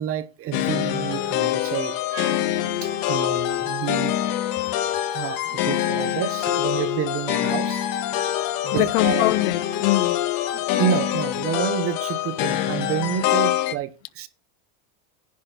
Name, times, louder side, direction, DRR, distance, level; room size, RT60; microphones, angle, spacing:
voice 1, 0.0-2.5 2.8-4.2 5.1-7.9 8.6-9.2 10.5-14.3, right 10 dB, 30° right, 0.8 m, -29 dB
sound 1, 0.5-13.7, left 12 dB, 50° left, 1.1 m, -25 dB
voice 2, 8.7-10.2, left 18 dB, 65° left, 0.6 m, -23 dB
10.5 x 4.4 x 5.9 m
supercardioid pair, 130°, 43 cm